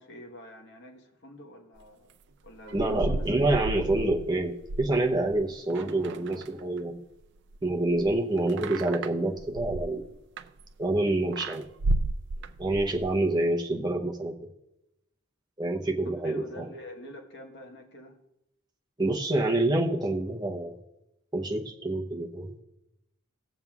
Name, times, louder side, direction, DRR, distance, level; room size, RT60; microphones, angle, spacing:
voice 1, 0.0-2.2 2.4-3.8 16.0-18.2, equal, 55° left, 3 dB, 1.2 m, -46 dB
sound 1, 2.5-7.0 7.2-11.0 11.3-13.2, right 2 dB, 55° right, 0.4 m, -33 dB
voice 2, 2.7-7.0 7.6-10.1 10.8-11.7 12.6-14.4 15.6-16.7 19.0-20.8 21.3-22.6, right 2 dB, 20° right, 0 dB, 0.7 m, -27 dB
18.0 x 7.3 x 2.4 m, 0.90 s
head